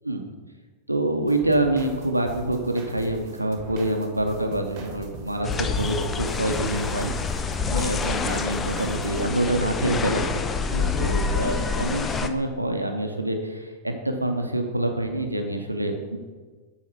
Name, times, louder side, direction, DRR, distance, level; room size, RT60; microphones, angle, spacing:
voice 1, 0.9-5.5 5.8-7.1 7.7-16.2, right 1 dB, 85° right, 4 dB, 0.7 m, -26 dB
sound 1, 1.3-9.3, right 3 dB, 40° right, 1.3 m, -40 dB
sound 2, 5.4-12.3, left 5 dB, 20° left, 0.4 m, -27 dB
8.1 x 4.1 x 4.6 m, 1.4 s
figure-of-eight pair, 90°, 0 cm